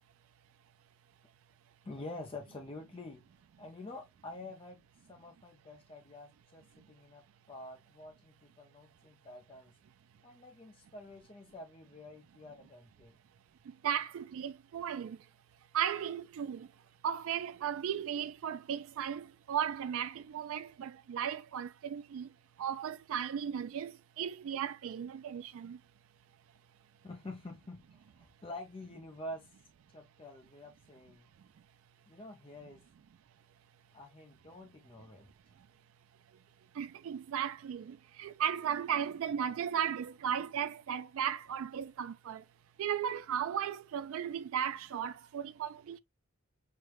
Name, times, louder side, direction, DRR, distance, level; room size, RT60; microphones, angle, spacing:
voice 1, 1.8-3.2 3.6-4.8 5.1-9.7 10.2-13.1 27.0-29.5 29.9-31.3 32.1-32.9 33.9-35.3, left 2 dB, 25° left, 0.4 m, -48 dB
voice 2, 13.6-15.3 15.7-16.7 17.0-22.3 22.6-25.8 36.7-42.4 42.8-46.0, right 8 dB, 70° right, 0.3 m, -36 dB
6.3 x 2.1 x 3.0 m
head